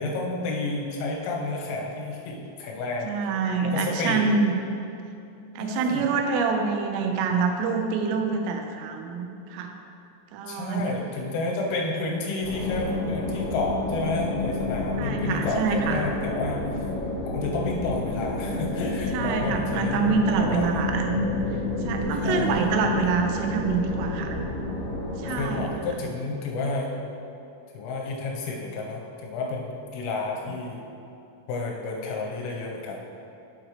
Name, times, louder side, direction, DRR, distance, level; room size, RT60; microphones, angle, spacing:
voice 1, 0.0-3.1 3.6-4.2 5.6-6.1 10.5-16.9 17.2-20.9 22.2-22.7 25.3-27.0 27.7-30.8 31.5-33.0, left 3 dB, 80° left, -1 dB, 3.6 m, -30 dB
voice 2, 3.0-4.5 5.6-9.7 10.3-10.8 15.0-16.0 19.1-21.1 21.9-24.4 25.2-25.7, right 5 dB, 85° right, 4 dB, 3.3 m, -26 dB
sound 1, 12.4-25.7, left 2 dB, 50° left, 2.2 m, -29 dB
8.8 x 7.9 x 3.3 m, 2.7 s
omnidirectional pair, 5.7 m